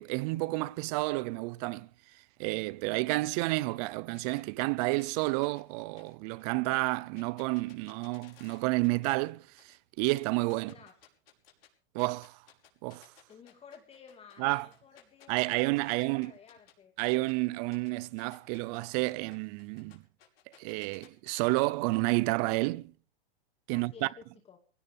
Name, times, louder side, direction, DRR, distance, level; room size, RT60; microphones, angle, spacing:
voice 1, 0.0-1.9 2.4-10.7 11.9-12.4 12.8-13.0 14.4-14.7 15.3-16.3 17.0-20.0 20.6-22.9 23.7-24.1, right 23 dB, 40° right, 0.8 m, -30 dB
sound 1, 4.1-9.3 9.6-11.7 12.0-17.3 17.7-21.5, left 10 dB, 70° left, 5.5 m, -60 dB
voice 2, 10.5-11.0 13.3-16.9 23.7-24.6, left 6 dB, 20° left, 2.3 m, -54 dB
23.0 x 17.0 x 3.6 m
hypercardioid pair, 125°, 30 cm